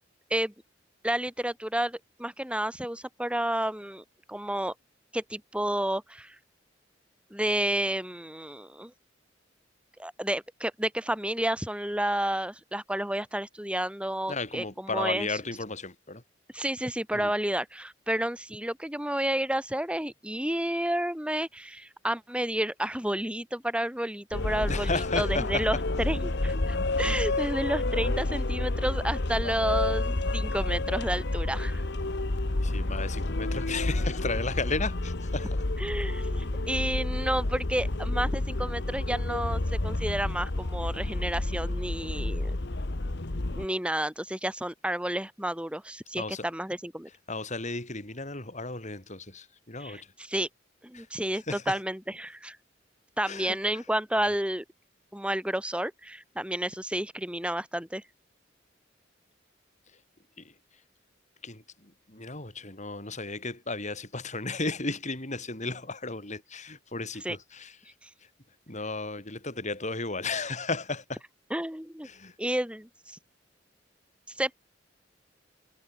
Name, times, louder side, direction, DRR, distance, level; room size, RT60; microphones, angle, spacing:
voice 1, 1.0-4.7 5.1-6.4 7.3-8.9 10.0-15.3 16.5-31.9 35.8-42.6 43.5-47.1 49.8-50.5 50.8-52.6 53.2-54.6 55.1-58.0 67.2-67.4 71.5-72.1 72.4-73.2 74.4-74.6, right 1 dB, 5° right, 4.1 m, -31 dB
voice 2, 14.3-16.2 17.1-17.3 24.7-25.6 27.0-27.5 27.8-28.1 32.6-35.6 46.2-46.5 47.3-50.0 50.9-51.1 51.5-51.8 53.3-53.6 60.4-60.5 61.4-67.7 68.7-71.2 72.0-72.3, left 3 dB, 40° left, 7.6 m, -34 dB
sound 1, 24.3-43.7, left 2 dB, 65° left, 1.3 m, -30 dB
head